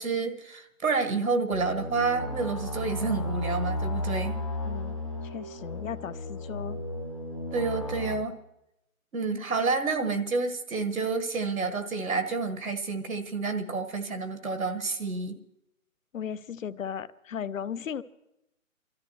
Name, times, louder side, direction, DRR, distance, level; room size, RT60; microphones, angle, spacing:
voice 1, 0.0-4.4 7.5-8.4 9.1-15.4, right 4 dB, 80° right, 1.6 m, -29 dB
sound 1, 1.5-8.2, left 1 dB, 25° left, 0.6 m, -34 dB
voice 2, 4.6-5.0 5.2-6.8 16.1-18.0, left 8 dB, 65° left, 0.7 m, -36 dB
28.5 x 13.5 x 3.0 m
hypercardioid pair, 170°, 42 cm